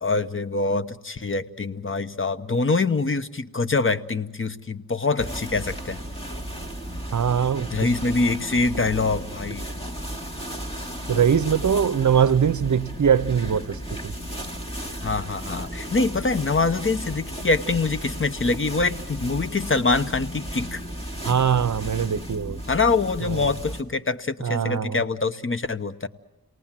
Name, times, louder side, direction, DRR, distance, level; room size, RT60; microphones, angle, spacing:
voice 1, 0.0-6.0 7.7-9.7 15.0-20.8 22.7-26.1, left 3 dB, 35° left, 1.0 m, -24 dB
sound 1, 5.2-23.8, equal, 15° left, 2.7 m, -34 dB
voice 2, 7.1-7.8 11.1-13.8 14.0-14.1 21.2-22.6 23.3-23.4 24.4-25.0, right 7 dB, 50° right, 0.8 m, -22 dB
29.0 x 19.0 x 7.5 m
cardioid pair, 70°, 37 cm